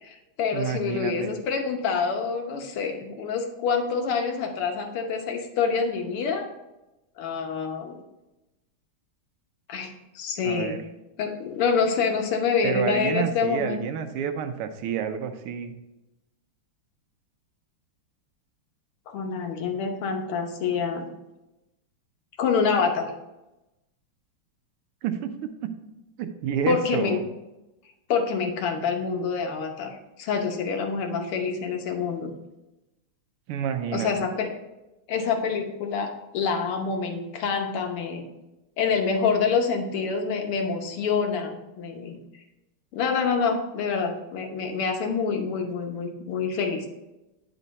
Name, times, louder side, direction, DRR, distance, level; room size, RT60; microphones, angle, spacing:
voice 1, 0.0-6.5 7.2-8.0 9.7-10.8 11.2-13.8 19.1-21.1 22.4-23.1 26.7-27.2 28.1-32.3 33.9-34.5 35.1-38.2 38.8-42.2 42.9-46.9, left 5 dB, 85° left, 4 dB, 1.9 m, -26 dB
voice 2, 0.5-1.3 10.4-10.8 12.6-15.8 25.0-25.7 26.2-27.2 33.5-34.1, right 8 dB, 85° right, 8 dB, 1.6 m, -29 dB
9.1 x 4.4 x 4.0 m, 0.98 s
omnidirectional pair, 2.4 m